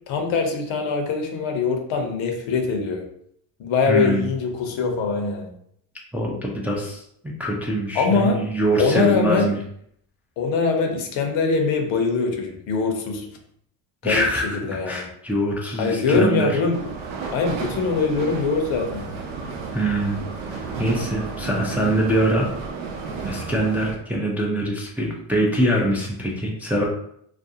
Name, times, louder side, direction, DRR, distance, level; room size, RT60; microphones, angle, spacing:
voice 1, 0.1-3.0 3.6-5.5 7.9-8.4 8.8-9.5 10.4-13.3 14.0-15.1 15.8-16.8 17.3-19.1, left 4 dB, 70° left, 3 dB, 0.8 m, -23 dB
voice 2, 3.9-4.2 6.1-7.0 7.4-9.6 14.0-14.6 14.9-16.6 19.7-20.2 20.5-22.5 23.2-26.9, right 1 dB, 5° right, -2 dB, 0.4 m, -23 dB
sound 1, 16.7-23.9, right 4 dB, 80° right, 0.7 m, -32 dB
2.5 x 2.2 x 2.7 m, 0.69 s
supercardioid pair, 80°, 48 cm